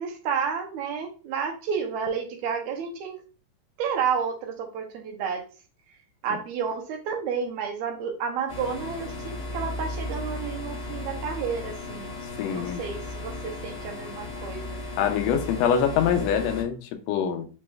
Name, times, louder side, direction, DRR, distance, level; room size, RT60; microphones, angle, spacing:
voice 1, 0.0-3.2 3.8-5.4 6.2-12.1 12.5-14.8, right 6 dB, 75° right, 1.9 m, -31 dB
sound 1, 8.5-16.6, left 2 dB, 45° left, 0.9 m, -35 dB
voice 2, 12.4-12.8 15.0-17.4, left 8 dB, 85° left, 1.4 m, -24 dB
5.3 x 3.1 x 2.2 m
omnidirectional pair, 3.6 m